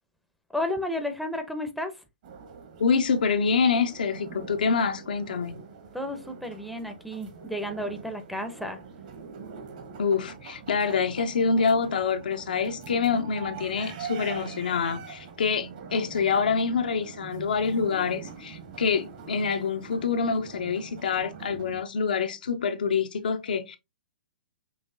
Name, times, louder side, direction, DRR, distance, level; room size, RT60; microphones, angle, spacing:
voice 1, 0.5-2.0 5.9-8.8, left 1 dB, ahead, 0.7 m, -32 dB
sound 1, 2.2-21.8, right 6 dB, 55° right, 1.4 m, -43 dB
voice 2, 2.8-5.6 10.0-23.8, left 5 dB, 75° left, 0.8 m, -26 dB
5.5 x 2.9 x 2.6 m
hypercardioid pair, 130°, 5 cm